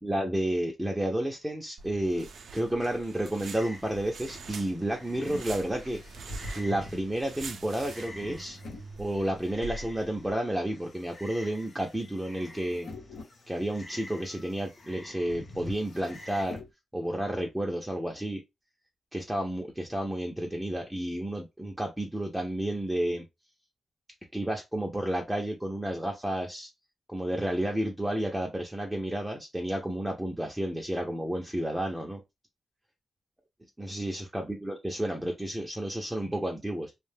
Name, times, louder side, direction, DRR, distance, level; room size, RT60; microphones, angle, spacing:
voice 1, 0.0-6.0 6.5-8.6 9.0-12.9 13.5-16.6 16.9-18.4 19.1-23.3 24.3-26.7 27.1-32.2 33.8-36.9, right 1 dB, 5° right, 0.5 m, -31 dB
sound 1, 1.8-10.3, right 4 dB, 65° right, 0.4 m, -45 dB
Frog, 3.5-16.4, left 1 dB, 30° left, 0.8 m, -51 dB
sound 2, 4.7-9.5 10.1-16.7, left 1 dB, 85° left, 0.9 m, -46 dB
2.4 x 2.1 x 3.2 m
cardioid pair, 100°, 0 cm